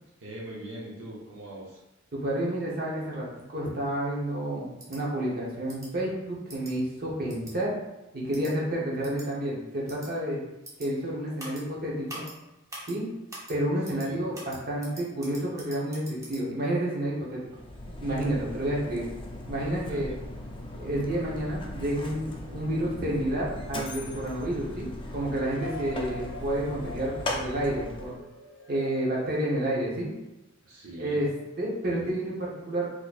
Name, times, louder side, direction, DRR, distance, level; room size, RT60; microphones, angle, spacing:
voice 1, 0.2-1.8 13.9-14.2 19.8-20.2 30.6-31.2, right 1 dB, 75° right, -5 dB, 0.7 m, -42 dB
voice 2, 2.1-7.7 8.1-10.4 10.8-12.2 12.9-13.0 13.5-17.4 18.0-19.0 19.5-20.1 20.8-28.2 28.7-30.1 31.0-31.3 31.6-32.9, right 1 dB, 50° right, -4 dB, 1.0 m, -30 dB
sound 1, 4.8-5.0 5.7-5.9 6.5-6.7 7.3-7.5 8.3-8.5 9.0-9.3 9.9-10.1 10.6-10.9 11.4-11.6 12.1-12.3 12.7-12.9 13.3-13.5 13.8-14.1 14.3-16.4, right 1 dB, 15° right, 0.9 m, -43 dB
Mechanisms, 17.4-28.2, left 1 dB, 25° left, 0.4 m, -38 dB
sound 2, 25.5-30.4, left 2 dB, 85° left, 0.6 m, -44 dB
4.2 x 2.9 x 2.4 m, 0.95 s
head